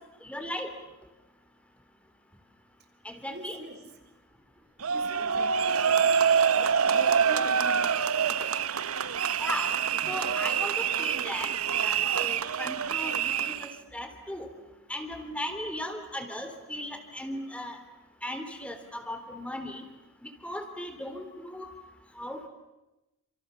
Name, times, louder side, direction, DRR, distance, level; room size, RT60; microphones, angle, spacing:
voice 1, 0.2-0.7 3.0-3.6 9.4-9.8 10.1-11.5 11.8-14.5 14.9-17.8 18.2-19.8 20.2-21.7 22.2-22.5, left 1 dB, 5° left, 6 dB, 3.6 m, -37 dB
voice 2, 3.3-3.9 4.9-6.1 6.6-8.0 8.4-8.6, right 2 dB, 50° right, 5 dB, 4.6 m, -44 dB
sound 1, 4.8-13.7, right 7 dB, 85° right, 1.0 m, -26 dB
29.0 x 28.0 x 7.2 m, 1.0 s
head